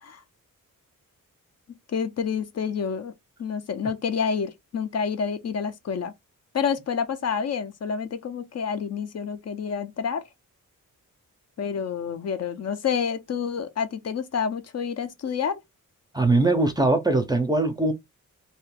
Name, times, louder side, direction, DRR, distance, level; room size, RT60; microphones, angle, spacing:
voice 1, 1.9-3.1 3.4-6.1 6.5-10.2 11.6-15.6, left 6 dB, 50° left, 0.5 m, -28 dB
voice 2, 16.1-17.9, right 2 dB, 10° right, 0.4 m, -21 dB
2.7 x 2.4 x 3.3 m
wide cardioid pair, 160°, 33 cm